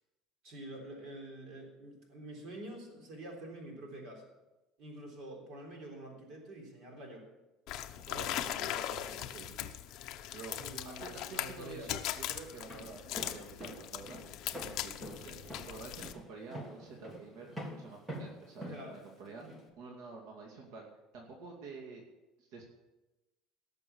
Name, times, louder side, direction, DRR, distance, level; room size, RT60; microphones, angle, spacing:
voice 1, 0.4-4.2 4.8-7.3 8.0-8.3 10.6-11.9 18.7-19.0, right 1 dB, 45° right, 2 dB, 3.6 m, -47 dB
sound 1, 7.7-16.1, left 12 dB, 50° left, 0.8 m, -40 dB
voice 2, 8.0-10.0 10.3-10.6 10.8-14.2 14.6-15.4 15.7-19.5 19.8-20.9 21.1-22.0 22.4-22.7, right 4 dB, 75° right, 0 dB, 2.5 m, -49 dB
Walk footsteps, 12.5-19.6, equal, 5° right, 1.7 m, -46 dB
18.0 x 6.9 x 7.0 m, 1.0 s
cardioid pair, 180°, 0 cm